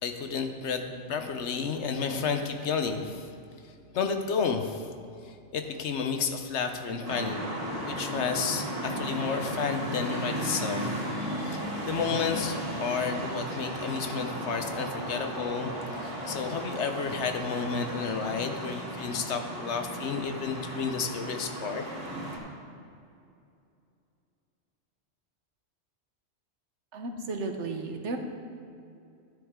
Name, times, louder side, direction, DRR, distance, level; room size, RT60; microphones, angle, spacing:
voice 1, 0.0-3.3 3.9-4.9 5.2-7.4 7.8-10.9 11.2-15.7 16.0-21.8, left 5 dB, 70° left, 6 dB, 1.0 m, -31 dB
sound 1, 7.0-22.4, equal, 55° right, 2.3 m, -35 dB
voice 2, 26.9-28.2, right 3 dB, 75° right, 4 dB, 1.2 m, -34 dB
10.5 x 10.5 x 3.7 m, 2.5 s
omnidirectional pair, 1.2 m